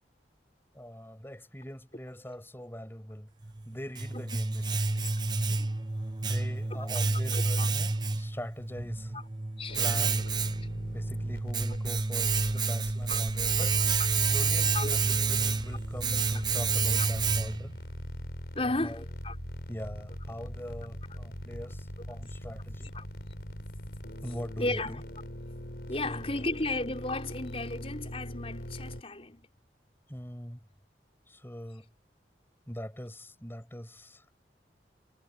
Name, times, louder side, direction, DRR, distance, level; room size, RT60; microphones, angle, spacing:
voice 1, 0.8-3.3 3.7-5.1 6.2-9.1 9.8-10.3 10.9-13.8 14.3-17.7 18.6-19.1 19.7-23.0 24.2-25.0 26.0-26.5 30.1-30.6 31.3-31.9 32.7-34.2, equal, 15° left, 6.9 m, -42 dB
Domestic sounds home sounds, 3.4-17.8, right 4 dB, 25° right, 0.7 m, -29 dB
voice 2, 7.1-7.7 9.1-9.3 9.6-9.9 13.1-13.2 14.7-15.0 17.0-17.1 18.6-19.4 22.9-23.0 24.6-25.0 25.9-29.5, left 2 dB, 35° left, 5.2 m, -34 dB
sound 1, 9.7-29.0, equal, 60° left, 6.1 m, -42 dB
head